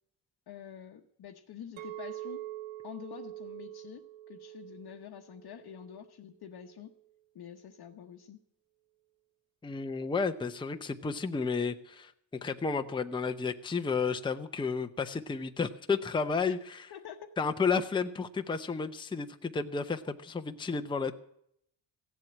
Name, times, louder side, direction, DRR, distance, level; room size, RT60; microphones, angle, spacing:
voice 1, 0.5-2.5 2.8-6.9 7.3-8.4 16.5-16.6 16.9-17.3, left 9 dB, 50° left, 2 dB, 1.0 m, -47 dB
Chink clink, 1.8-6.1 6.6-6.9, right 14 dB, 80° right, 0.8 m, -45 dB
voice 2, 9.6-12.1 12.4-16.6 17.4-21.1, left 5 dB, 10° left, 7 dB, 0.7 m, -32 dB
16.0 x 7.7 x 9.7 m, 0.71 s
cardioid pair, 120°, 47 cm